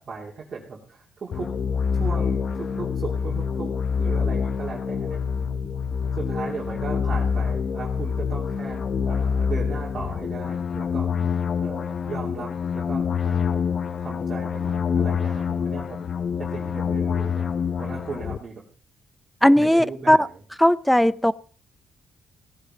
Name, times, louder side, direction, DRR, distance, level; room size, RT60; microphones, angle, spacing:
voice 1, 0.0-1.5 1.9-5.2 6.1-11.1 11.6-13.6 14.0-18.6 19.4-20.4, right 4 dB, 45° right, -4 dB, 2.9 m, -37 dB
sound 1, 1.3-18.4, left 6 dB, 50° left, 0.7 m, -26 dB
voice 2, 19.4-20.2 20.6-21.3, equal, 5° left, 19 dB, 0.5 m, -17 dB
17.0 x 10.5 x 3.8 m, 0.40 s
cardioid pair, 95°, 0 cm